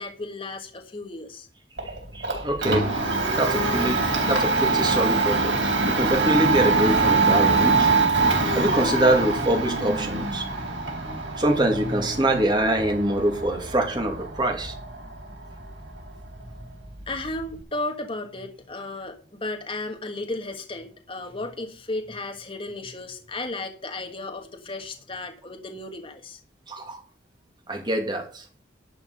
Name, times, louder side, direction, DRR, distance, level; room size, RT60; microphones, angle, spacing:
voice 1, 0.0-1.5 17.1-26.4, left 2 dB, 30° left, 4 dB, 1.5 m, -34 dB
Domestic sounds home sounds, 1.8-17.6, right 3 dB, 80° right, 4.1 m, -24 dB
voice 2, 2.1-2.9 3.4-7.9 8.5-10.5 11.4-14.7 26.7-27.0 27.7-28.4, right 1 dB, 25° right, 3 dB, 2.5 m, -24 dB
11.5 x 5.9 x 6.6 m, 0.39 s
head